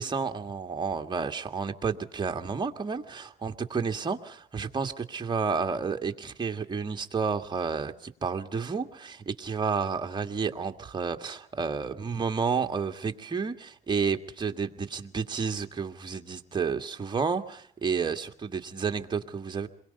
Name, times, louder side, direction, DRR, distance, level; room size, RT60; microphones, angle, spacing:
voice 1, 0.0-19.7, right 5 dB, 25° right, 5 dB, 1.9 m, -31 dB
28.0 x 22.5 x 5.5 m, 0.63 s
cardioid pair, 110°, 17 cm